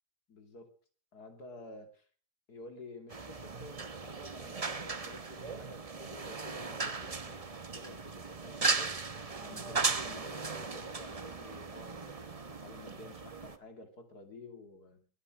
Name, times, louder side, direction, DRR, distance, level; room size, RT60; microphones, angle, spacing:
voice 1, 0.3-0.7 1.1-2.1 2.5-8.9 9.4-15.1, left 2 dB, 65° left, 6 dB, 3.3 m, -51 dB
sound 1, 3.1-13.6, right 4 dB, 25° right, 0.9 m, -37 dB
21.5 x 9.2 x 6.3 m, 0.43 s
omnidirectional pair, 1.8 m